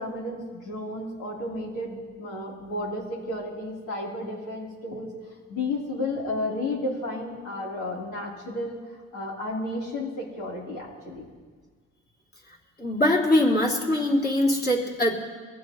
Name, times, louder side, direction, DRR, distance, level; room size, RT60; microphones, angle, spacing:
voice 1, 0.0-5.1 5.5-11.3, left 2 dB, 80° left, -3 dB, 3.7 m, -32 dB
voice 2, 12.8-15.1, left 1 dB, 30° left, -3 dB, 3.1 m, -22 dB
22.5 x 15.0 x 3.1 m, 1.5 s
cardioid pair, 90°, 30 cm